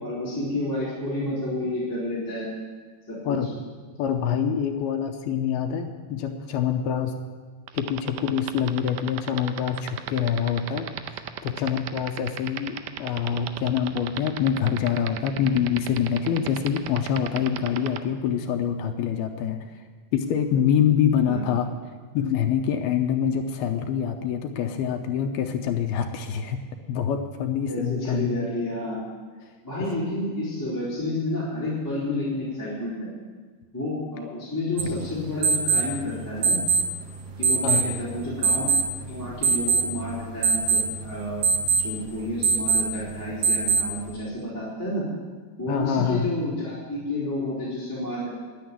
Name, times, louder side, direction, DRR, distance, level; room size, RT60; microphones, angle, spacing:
voice 1, 0.0-2.5 3.1-3.4 21.2-21.4 27.7-29.0 29.6-33.1 33.7-36.6 37.4-38.7 39.1-41.4 41.8-45.1 45.6-48.3, left 1 dB, 5° left, -10 dB, 3.3 m, -30 dB
voice 2, 4.0-7.2 7.7-19.7 20.1-21.7 22.1-28.5 34.9-35.0 37.6-37.9 45.7-46.3, left 8 dB, 80° left, 5 dB, 2.5 m, -25 dB
sound 1, 7.7-18.0, right 14 dB, 80° right, 2.3 m, -32 dB
sound 2, 34.8-44.1, right 4 dB, 65° right, 2.5 m, -25 dB
10.5 x 10.0 x 9.5 m, 1.5 s
omnidirectional pair, 4.8 m